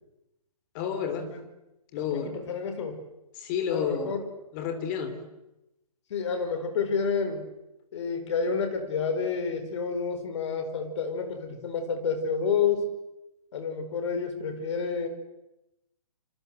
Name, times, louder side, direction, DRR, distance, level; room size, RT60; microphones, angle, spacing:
voice 1, 0.7-1.3 1.9-2.3 3.4-4.1 4.5-5.2, left 7 dB, 30° left, 8 dB, 3.5 m, -30 dB
voice 2, 2.0-3.0 3.7-4.2 6.1-7.4 7.9-12.9 13.5-15.1, left 5 dB, 50° left, 8 dB, 4.8 m, -29 dB
27.5 x 26.0 x 8.0 m, 0.94 s
figure-of-eight pair, 135°, 20 cm